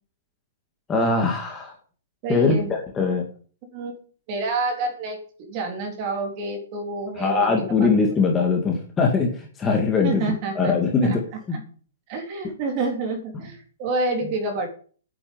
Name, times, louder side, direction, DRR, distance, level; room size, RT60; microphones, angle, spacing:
voice 1, 0.9-1.7 2.3-2.6 3.0-3.2 7.2-11.2 11.5-11.6, left 4 dB, 10° left, 1 dB, 2.0 m, -21 dB
voice 2, 2.2-2.7 3.7-3.9 4.3-7.5 7.8-8.1 10.0-10.7 11.0-11.2 11.5-11.6 12.1-14.7, right 3 dB, 25° right, 4 dB, 3.6 m, -28 dB
9.5 x 8.8 x 9.4 m, 0.43 s
hypercardioid pair, 175°, 0 cm